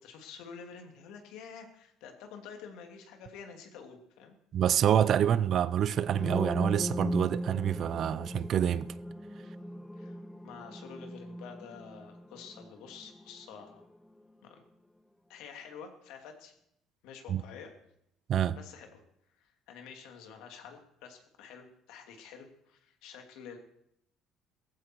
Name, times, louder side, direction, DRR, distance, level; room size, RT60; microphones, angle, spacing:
voice 1, 0.0-4.4 9.9-10.2 10.4-13.9 14.4-14.6 15.3-16.5 17.0-17.7 18.5-19.0 19.3-23.6, left 6 dB, 80° left, 2.8 m, -49 dB
voice 2, 4.5-8.9 17.3-17.4 18.3-18.6, right 9 dB, 50° right, 0.5 m, -27 dB
sound 1, 6.0-13.8, equal, 5° left, 0.5 m, -38 dB
17.5 x 14.5 x 4.7 m
cardioid pair, 135°, 0 cm